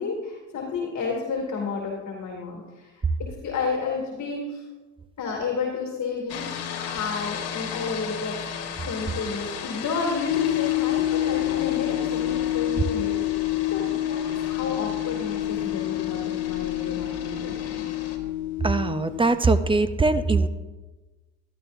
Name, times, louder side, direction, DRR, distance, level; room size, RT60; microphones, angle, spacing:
voice 1, 0.0-4.6 5.2-13.3 13.7-17.9, left 4 dB, 40° left, -1 dB, 2.5 m, -31 dB
sound 1, 6.3-18.2, left 7 dB, 60° left, 1.7 m, -36 dB
sound 2, 10.3-19.4, left 15 dB, 80° left, 0.5 m, -27 dB
voice 2, 18.6-20.5, right 3 dB, 15° right, 12 dB, 0.5 m, -21 dB
13.0 x 11.0 x 2.6 m, 1.2 s
supercardioid pair, 85°, 43 cm